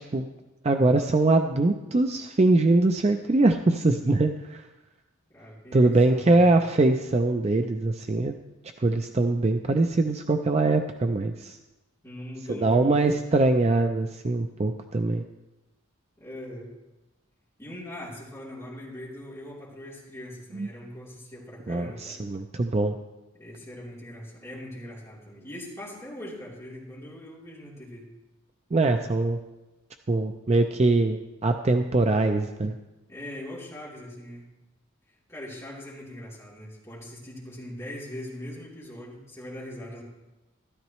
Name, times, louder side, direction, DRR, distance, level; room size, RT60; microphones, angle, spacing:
voice 1, 0.6-4.6 5.7-8.3 8.8-11.6 12.5-15.2 20.5-20.7 21.7-22.9 28.7-29.4 30.1-32.7, right 2 dB, 30° right, 6 dB, 0.4 m, -22 dB
voice 2, 5.3-6.5 12.0-13.2 16.2-16.7 17.6-22.2 23.3-28.1 33.1-34.5 35.3-40.0, left 1 dB, 15° left, -7 dB, 3.2 m, -41 dB
13.5 x 13.0 x 3.1 m, 1.0 s
head